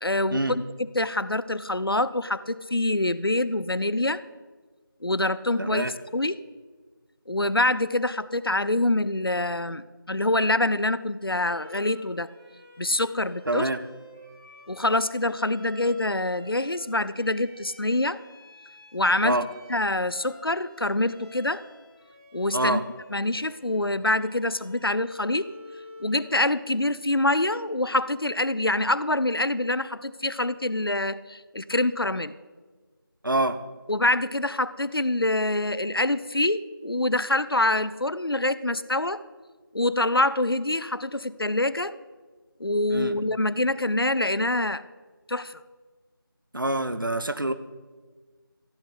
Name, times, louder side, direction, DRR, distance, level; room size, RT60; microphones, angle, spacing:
voice 1, 0.0-4.2 5.0-5.9 6.1-6.4 7.3-12.3 12.8-13.7 14.7-18.2 18.9-19.4 19.7-21.6 22.3-22.8 23.1-25.5 26.0-32.3 33.9-39.2 39.7-42.0 42.6-44.8 45.3-45.6, left 1 dB, 85° left, 16 dB, 0.7 m, -25 dB
voice 2, 5.6-5.9 13.5-13.8 19.2-19.4 22.5-22.8 33.2-33.6 42.9-43.1 46.5-47.5, right 2 dB, 65° right, 12 dB, 1.0 m, -26 dB
Bowed string instrument, 11.2-26.4, left 1 dB, 15° right, 3.3 m, -50 dB
15.0 x 7.4 x 8.5 m, 1.4 s
figure-of-eight pair, 170°, 12 cm